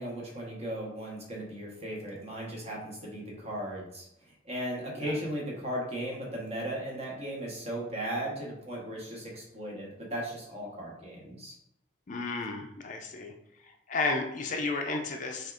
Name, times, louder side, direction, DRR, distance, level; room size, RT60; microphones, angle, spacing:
voice 1, 0.0-4.1 4.4-11.5, right 1 dB, 35° right, -3 dB, 1.1 m, -36 dB
voice 2, 12.1-13.3 13.9-15.5, left 3 dB, 40° left, 3 dB, 0.4 m, -32 dB
6.2 x 2.4 x 2.4 m, 0.80 s
head